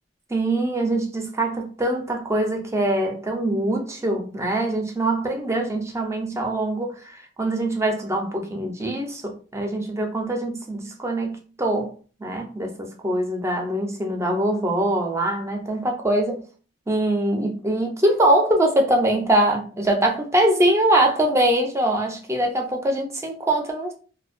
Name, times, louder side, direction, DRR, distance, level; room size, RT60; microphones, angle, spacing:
voice 1, 0.3-11.9 12.2-16.4 16.9-23.9, right 1 dB, 15° right, 0.4 m, -23 dB
2.5 x 2.1 x 2.4 m
head